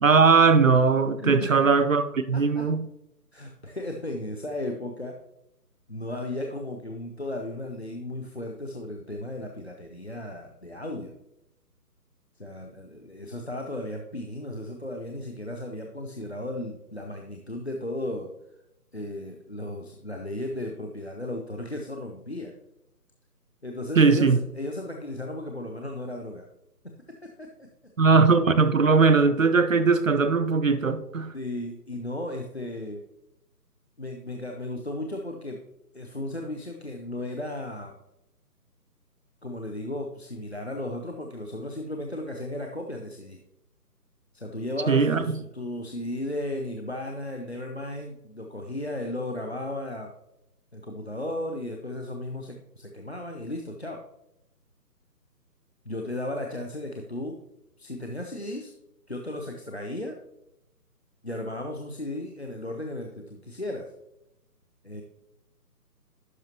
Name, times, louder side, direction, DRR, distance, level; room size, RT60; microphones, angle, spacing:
voice 1, 0.0-2.9 24.0-24.4 28.0-31.3 44.9-45.4, right 4 dB, 55° right, 0.5 m, -20 dB
voice 2, 1.2-1.6 2.3-2.7 3.3-5.2 5.9-11.1 12.4-18.3 18.9-22.5 23.6-26.5 27.2-27.7 31.3-33.0 34.0-35.6 35.9-38.0 39.4-43.4 44.3-50.1 50.7-54.0 55.9-57.4 57.8-58.7 59.1-60.2 61.2-63.9 64.8-65.0, left 1 dB, 45° left, 0.5 m, -35 dB
11.0 x 5.3 x 2.9 m
hypercardioid pair, 175°, 49 cm